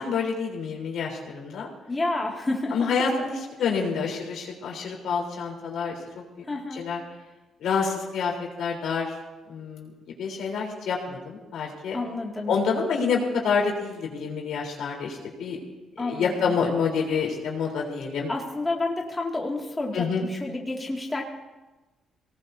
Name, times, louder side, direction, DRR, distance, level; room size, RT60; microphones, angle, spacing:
voice 1, 0.0-1.7 2.7-6.0 6.7-7.0 7.6-8.3 8.6-9.1 9.5-9.9 10.2-12.0 12.5-15.6 16.0-18.3 19.9-20.3, left 5 dB, 75° left, -1 dB, 3.7 m, -27 dB
voice 2, 1.9-2.9 6.5-6.9 11.9-12.5 16.0-16.5 18.3-21.2, left 2 dB, 20° left, -2 dB, 2.2 m, -30 dB
23.5 x 18.5 x 2.7 m, 1.1 s
cardioid pair, 90°, 0 cm